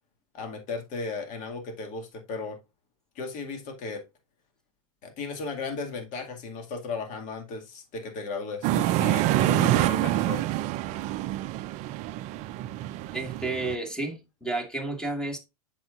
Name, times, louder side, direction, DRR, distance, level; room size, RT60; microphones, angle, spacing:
voice 1, 0.3-2.6 3.2-4.0 5.0-10.5, left 4 dB, 40° left, 2.1 m, -35 dB
sound 1, 8.6-13.7, right 15 dB, 40° right, 0.5 m, -26 dB
voice 2, 13.1-15.4, right 2 dB, 5° left, 1.8 m, -31 dB
7.8 x 6.2 x 2.4 m
hypercardioid pair, 95°, 19 cm